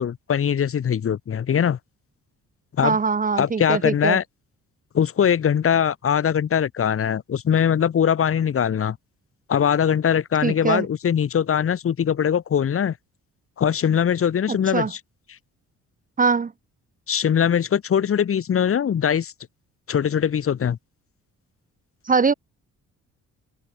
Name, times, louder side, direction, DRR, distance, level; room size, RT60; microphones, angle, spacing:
voice 1, 0.0-1.8 2.8-3.0 3.4-4.2 4.9-9.0 9.5-12.9 13.6-15.0 17.1-19.3 19.9-20.8, left 8 dB, 45° left, 1.6 m, -21 dB
voice 2, 2.8-4.2 10.4-10.9 14.7-14.9 16.2-16.5 22.1-22.3, right 5 dB, 25° right, 0.9 m, -21 dB
cardioid pair, 90°, 30 cm